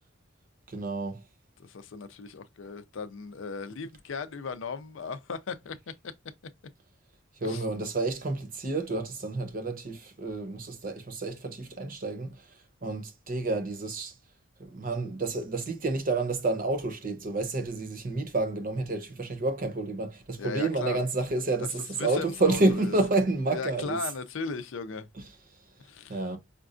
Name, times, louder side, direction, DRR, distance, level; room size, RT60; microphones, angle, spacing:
voice 1, 0.7-1.2 7.4-12.3 12.8-14.1 14.6-24.0 26.1-26.4, right 2 dB, 45° right, 0.7 m, -29 dB
voice 2, 1.6-5.8 7.4-7.6 20.4-21.0 21.6-22.9 23.5-25.1 25.8-26.3, left 5 dB, 70° left, 0.5 m, -37 dB
5.1 x 2.3 x 2.5 m
head